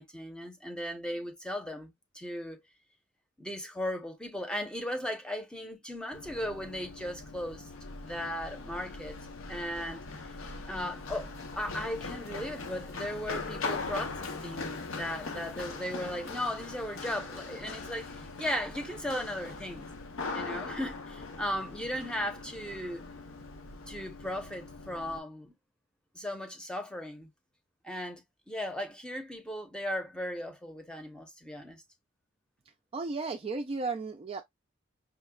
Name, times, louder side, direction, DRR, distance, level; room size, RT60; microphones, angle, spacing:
voice 1, 0.0-2.6 3.4-7.7 8.0-9.1 9.5-10.0 10.7-19.9 20.3-23.0 23.9-25.5 26.1-27.3 27.8-31.8, equal, 5° left, 0.8 m, -37 dB
Run, 6.1-25.2, left 3 dB, 80° left, 0.8 m, -41 dB
voice 2, 32.9-34.4, right 3 dB, 30° right, 0.4 m, -34 dB
5.7 x 2.2 x 2.2 m
head